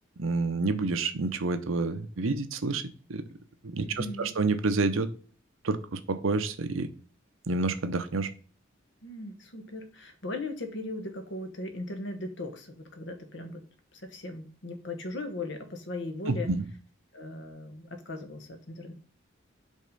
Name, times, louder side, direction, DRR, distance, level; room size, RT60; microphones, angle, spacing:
voice 1, 0.2-2.8 3.1-3.2 3.6-5.1 5.6-6.9 7.5-8.3 16.3-16.7, right 3 dB, 85° right, 10 dB, 0.7 m, -28 dB
voice 2, 3.8-4.3 9.0-13.6 14.0-16.5 17.1-18.9, left 2 dB, 65° left, 6 dB, 1.2 m, -38 dB
5.3 x 3.7 x 5.4 m, 0.40 s
head